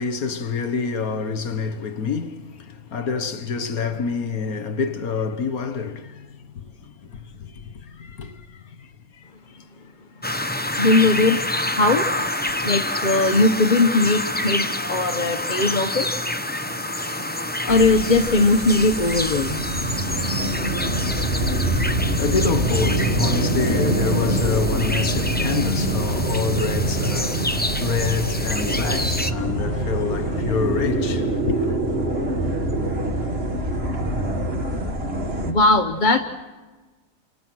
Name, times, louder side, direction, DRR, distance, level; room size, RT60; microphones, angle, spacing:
voice 1, 0.0-6.3 7.6-7.7 8.0-8.3 12.4-12.5 21.6-31.8, left 5 dB, 85° left, 1.9 m, -27 dB
sound 1, 10.2-29.3, left 1 dB, 10° left, 0.7 m, -28 dB
voice 2, 10.8-11.4 11.8-12.0 12.6-16.1 17.7-19.6 35.4-36.2, left 2 dB, 35° left, 1.2 m, -19 dB
sound 2, 17.7-35.5, right 1 dB, 45° right, 2.3 m, -25 dB
30.0 x 27.0 x 6.3 m
omnidirectional pair, 1.5 m